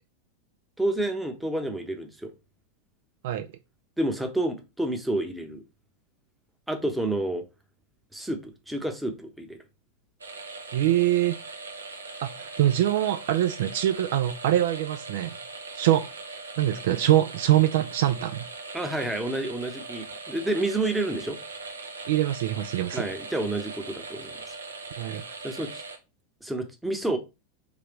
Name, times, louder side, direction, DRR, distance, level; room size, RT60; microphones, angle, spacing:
voice 1, 0.8-2.3 4.0-5.6 6.7-7.4 8.1-9.6 18.7-21.4 22.9-24.3 25.1-25.2 25.4-25.8 26.4-27.2, right 1 dB, 5° right, 0.8 m, -29 dB
sound 1, 10.2-26.0, right 3 dB, 75° right, 0.8 m, -40 dB
voice 2, 10.7-11.4 12.2-15.4 15.7-16.1 16.6-18.4 22.1-23.0 25.0-25.2, right 13 dB, 55° right, 0.3 m, -24 dB
5.0 x 3.3 x 3.0 m
figure-of-eight pair, 90°, 0 cm